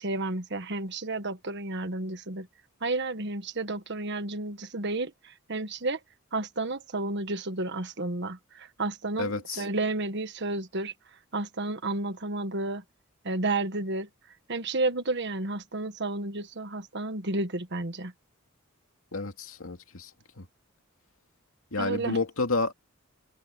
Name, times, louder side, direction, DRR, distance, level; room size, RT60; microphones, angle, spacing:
voice 1, 0.0-2.5 2.8-6.0 6.3-10.9 11.3-12.8 13.2-14.1 14.5-18.1 21.8-22.2, right 2 dB, 55° right, 1.5 m, -31 dB
voice 2, 9.2-9.6 19.1-20.1 20.4-20.5 21.7-22.7, left 3 dB, 80° left, 2.5 m, -30 dB
head